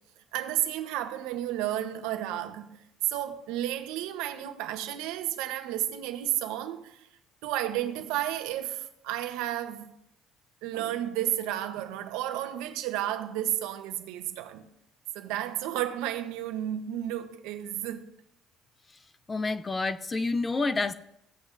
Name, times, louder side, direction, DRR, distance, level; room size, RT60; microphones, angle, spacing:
voice 1, 0.3-2.8 3.1-7.1 7.4-9.9 10.6-14.7 15.1-18.1, right 12 dB, 85° right, 0.9 m, -32 dB
voice 2, 19.3-20.9, left 3 dB, 20° left, 0.4 m, -28 dB
16.5 x 8.2 x 2.6 m
cardioid pair, 130°, 0 cm